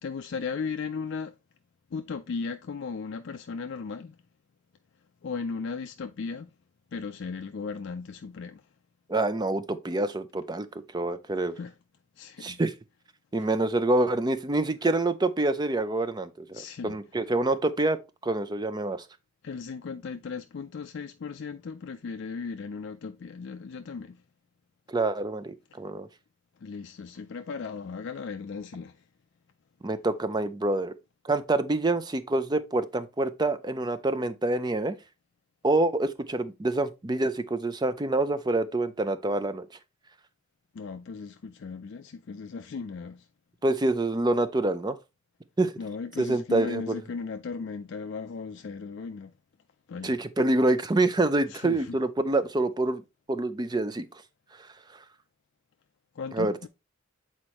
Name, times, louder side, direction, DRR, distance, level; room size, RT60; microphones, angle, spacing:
voice 1, 0.0-1.4 1.9-4.2 5.2-6.5 6.9-8.7 11.5-11.7 12.2-12.6 16.5-17.0 19.4-24.2 25.7-25.8 26.6-29.1 40.7-43.3 45.8-49.3 49.9-50.2 51.5-52.0 56.1-56.7, left 5 dB, 55° left, 0.4 m, -36 dB
voice 2, 9.1-10.7 10.9-11.6 12.4-12.7 13.3-18.0 18.2-19.1 24.9-26.1 29.8-30.9 31.2-35.0 35.6-39.7 43.6-45.0 45.6-45.7 46.2-47.0 50.0-53.0 53.3-54.1 54.6-54.7 56.3-56.5, right 2 dB, 20° right, 0.4 m, -26 dB
7.9 x 4.3 x 2.9 m
head